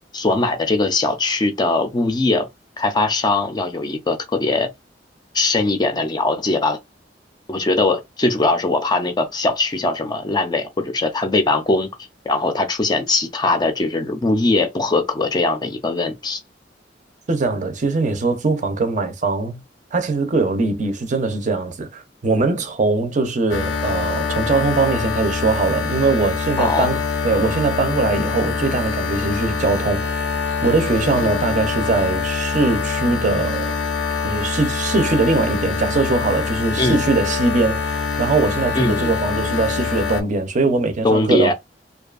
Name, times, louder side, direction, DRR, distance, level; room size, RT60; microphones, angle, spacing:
voice 1, 0.1-2.5 2.8-4.7 5.3-6.8 7.5-11.9 12.3-16.4 26.6-26.9 36.8-37.0 38.7-39.1 41.0-41.5, left 2 dB, 25° left, 0.4 m, -20 dB
voice 2, 17.3-19.6 19.9-33.8 34.2-41.5, right 3 dB, 45° right, 0.5 m, -21 dB
sound 1, 23.5-40.2, left 5 dB, 85° left, 0.5 m, -24 dB
2.6 x 2.3 x 2.3 m
head